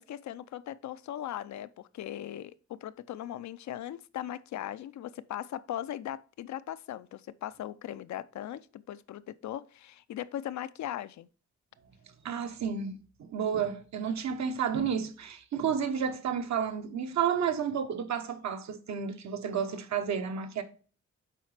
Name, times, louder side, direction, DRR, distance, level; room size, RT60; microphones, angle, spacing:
voice 1, 0.0-11.3, left 11 dB, 70° left, 0.4 m, -39 dB
voice 2, 12.2-20.6, right 7 dB, 70° right, 0.9 m, -31 dB
7.5 x 4.8 x 3.3 m
wide cardioid pair, 130°, 29 cm